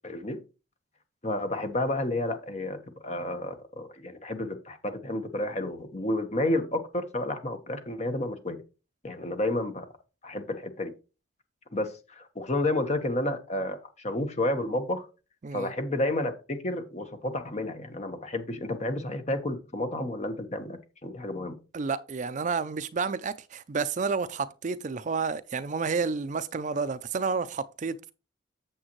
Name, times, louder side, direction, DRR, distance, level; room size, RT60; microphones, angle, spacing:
voice 1, 0.0-0.4 1.2-8.6 9.0-9.9 10.2-10.9 11.7-15.1 15.5-21.6, left 1 dB, 35° left, 1.1 m, -31 dB
voice 2, 21.7-28.1, right 5 dB, 40° right, 0.4 m, -30 dB
8.7 x 7.1 x 3.1 m
head